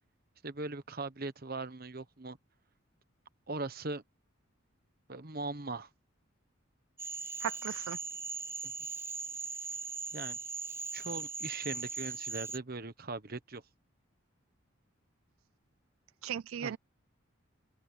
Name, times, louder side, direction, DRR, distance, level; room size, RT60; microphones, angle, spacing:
voice 1, 0.4-2.4 3.5-4.0 5.1-5.9 10.1-10.4 10.9-13.6 16.6-16.8, right 3 dB, 45° right, 1.2 m, -39 dB
Cricket / Frog, 7.0-12.6, right 4 dB, 10° right, 0.5 m, -39 dB
voice 2, 7.4-8.0 16.2-16.8, right 9 dB, 85° right, 0.3 m, -37 dB
open air
head